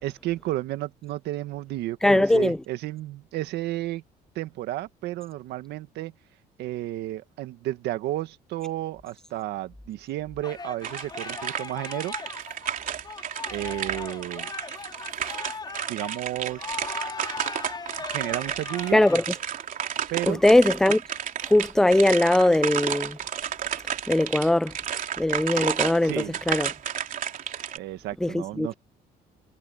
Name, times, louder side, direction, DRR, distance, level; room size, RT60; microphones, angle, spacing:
voice 1, 0.0-4.0 4.3-6.1 6.6-12.1 13.5-14.5 15.9-16.7 18.1-19.0 20.1-20.4 26.0-26.4 27.7-28.7, right 15 dB, 80° right, 1.8 m, -32 dB
voice 2, 2.0-2.6 18.9-19.2 20.3-21.0 21.5-23.2 24.1-24.8 25.2-26.7 28.2-28.7, left 1 dB, 5° left, 0.4 m, -20 dB
sound 1, 10.4-19.2, left 4 dB, 25° left, 3.5 m, -39 dB
sound 2, 10.8-27.8, right 9 dB, 55° right, 3.3 m, -32 dB
cardioid pair, 110°, 17 cm